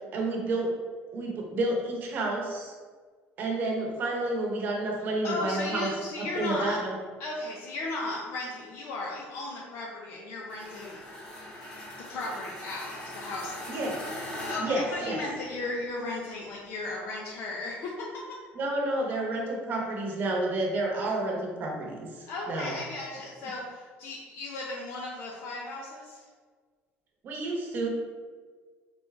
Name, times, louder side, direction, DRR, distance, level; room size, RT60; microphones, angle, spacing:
voice 1, 0.1-0.7 1.1-2.7 3.4-5.9 6.2-7.0 13.7-14.0 14.6-15.2 18.5-22.8 27.2-27.9, right 2 dB, 40° right, 0 dB, 0.9 m, -30 dB
voice 2, 5.2-6.8 7.2-11.0 12.0-13.8 14.3-18.4 22.3-26.3, left 2 dB, 60° left, -2 dB, 0.6 m, -36 dB
sound 1, 10.5-15.7, left 1 dB, 20° left, 1.2 m, -41 dB
4.1 x 3.5 x 3.3 m, 1.5 s
cardioid pair, 145°, 5 cm